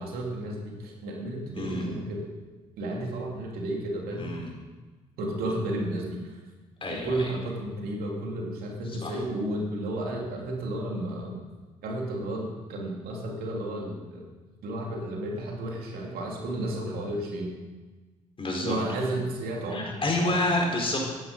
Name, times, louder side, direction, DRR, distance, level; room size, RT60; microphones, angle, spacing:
voice 1, 0.0-2.3 2.8-4.3 5.2-6.4 6.9-11.4 11.8-14.3 14.6-17.6 18.6-20.4, right 1 dB, 70° right, -1 dB, 2.8 m, -32 dB
voice 2, 4.2-4.5 6.8-7.3 8.9-9.1 18.4-18.7 19.7-21.0, left 2 dB, 35° left, 0 dB, 4.3 m, -28 dB
12.0 x 10.0 x 5.3 m, 1.3 s
hypercardioid pair, 55°, 16 cm